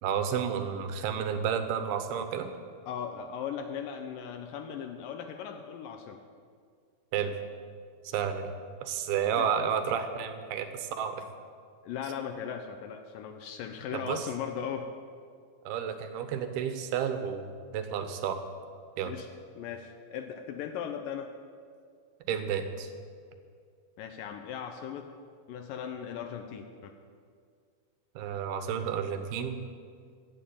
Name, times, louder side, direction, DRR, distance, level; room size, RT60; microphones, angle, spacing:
voice 1, 0.0-2.5 7.1-7.3 8.0-8.5 8.8-11.2 13.9-14.2 15.7-17.5 17.7-18.4 19.0-19.1 22.3-22.9 28.2-29.6, right 8 dB, 80° right, 8 dB, 2.9 m, -31 dB
voice 2, 2.9-6.2 9.4-9.5 11.8-14.9 19.1-19.3 19.6-21.3 24.0-25.1 25.5-26.9, left 8 dB, 75° left, 7 dB, 2.1 m, -38 dB
15.5 x 7.4 x 8.6 m, 2.1 s
omnidirectional pair, 4.5 m